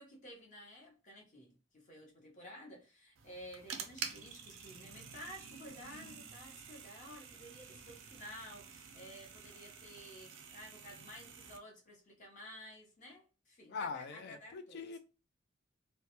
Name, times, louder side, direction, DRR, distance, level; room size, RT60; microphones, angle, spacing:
voice 1, 0.0-14.8, equal, 40° left, 0.8 m, -53 dB
sound 1, 3.1-11.6, right 6 dB, 75° right, 0.4 m, -49 dB
voice 2, 13.7-15.0, left 5 dB, 55° left, 0.3 m, -42 dB
2.2 x 2.0 x 2.8 m
head